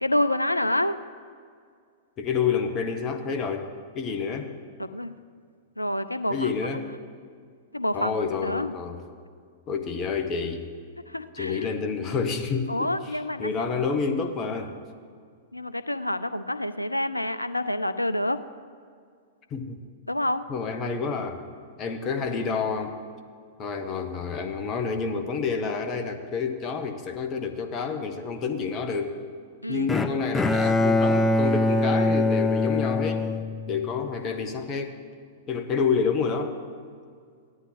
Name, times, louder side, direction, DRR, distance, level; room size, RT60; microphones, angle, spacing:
voice 1, 0.0-1.0 4.8-5.1 5.8-6.5 7.7-8.1 8.4-8.7 11.1-11.7 12.7-13.5 15.5-18.4 20.1-20.4 29.6-29.9, left 1 dB, 85° left, 13 dB, 0.4 m, -27 dB
voice 2, 2.2-4.5 6.3-6.9 7.9-9.0 9.7-10.7 11.3-12.9 13.4-14.7 19.5-19.8 20.5-21.4 21.8-23.0 23.6-29.2 29.7-33.3 33.7-35.0 35.5-36.6, left 5 dB, 30° left, 7 dB, 0.9 m, -28 dB
Bowed string instrument, 29.9-34.1, left 2 dB, 10° left, 0.5 m, -23 dB
17.0 x 11.0 x 3.3 m, 2.1 s
figure-of-eight pair, 100°, 0 cm